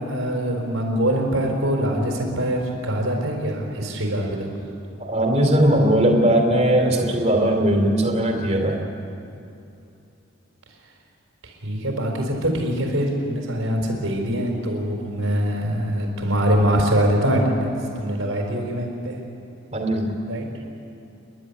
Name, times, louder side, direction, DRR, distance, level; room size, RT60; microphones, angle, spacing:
voice 1, 0.0-4.5 11.4-19.2 20.3-20.4, equal, 90° right, 2 dB, 4.4 m, -23 dB
voice 2, 5.0-8.8 19.7-20.2, right 1 dB, 35° right, 2 dB, 2.9 m, -19 dB
29.0 x 12.0 x 9.8 m, 2.7 s
head